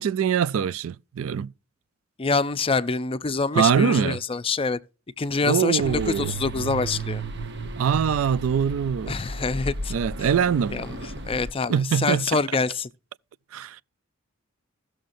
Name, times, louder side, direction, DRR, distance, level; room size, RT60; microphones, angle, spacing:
voice 1, 0.0-1.5 3.5-4.2 5.4-6.3 7.8-9.2 9.9-10.8 11.7-12.4 13.5-13.8, right 7 dB, 85° right, 0.4 m, -23 dB
voice 2, 2.2-4.8 5.2-7.2 9.1-9.9 10.2-10.3 10.7-10.9 11.2-12.9, left 4 dB, 30° left, 0.5 m, -25 dB
sound 1, 5.8-11.5, right 2 dB, 60° right, 1.0 m, -34 dB
16.0 x 6.4 x 2.6 m
head